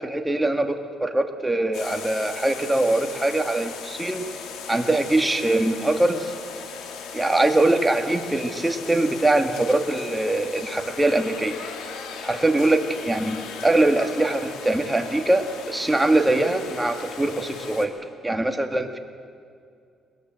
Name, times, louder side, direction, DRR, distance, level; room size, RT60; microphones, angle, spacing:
voice 1, 0.0-4.2 4.7-6.3 7.1-11.6 12.2-17.9 18.2-19.0, right 2 dB, 10° right, 5 dB, 2.2 m, -22 dB
sound 1, 1.7-17.9, left 6 dB, 90° left, 2.3 m, -37 dB
21.5 x 20.5 x 7.9 m, 2.3 s
cardioid pair, 90°, 0 cm